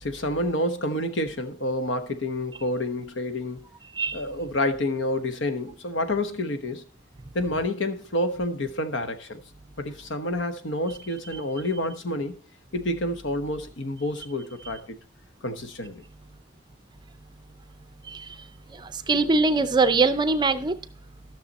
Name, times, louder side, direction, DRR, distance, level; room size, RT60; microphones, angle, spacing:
voice 1, 0.0-3.6 4.1-6.8 7.3-9.4 9.8-12.4 12.7-15.0 15.4-16.0, left 1 dB, 65° left, 1.1 m, -28 dB
voice 2, 3.9-4.2 18.0-18.4 18.7-20.7, right 3 dB, 20° right, 0.5 m, -23 dB
13.0 x 6.6 x 4.1 m
head